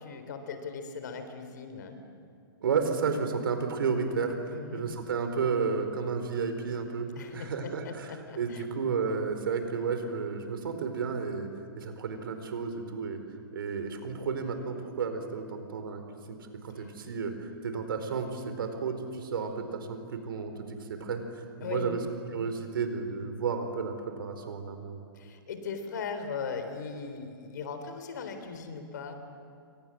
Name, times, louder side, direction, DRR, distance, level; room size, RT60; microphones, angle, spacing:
voice 1, 0.0-2.0 4.5-4.9 7.2-8.6 21.6-22.0 22.3-22.5 25.1-29.1, left 5 dB, 50° left, 8 dB, 3.6 m, -39 dB
voice 2, 2.6-7.1 7.3-11.5 11.8-13.2 13.5-16.0 16.3-22.0 22.3-25.0, right 5 dB, 65° right, 7 dB, 4.3 m, -32 dB
29.0 x 25.5 x 7.7 m, 2.3 s
hypercardioid pair, 170°, 13 cm